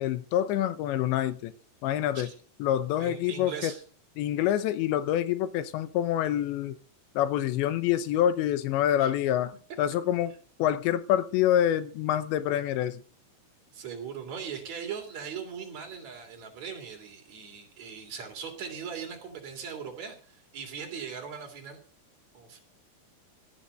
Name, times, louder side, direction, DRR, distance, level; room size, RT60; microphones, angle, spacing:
voice 1, 0.0-1.5 1.8-2.3 2.6-3.7 4.2-6.8 7.2-10.3 10.6-13.0, left 11 dB, 80° left, 3.2 m, -26 dB
voice 2, 3.0-3.8 9.0-9.1 13.7-21.8 22.3-22.6, right 7 dB, 40° right, 3.9 m, -39 dB
16.5 x 8.4 x 6.6 m
omnidirectional pair, 5.2 m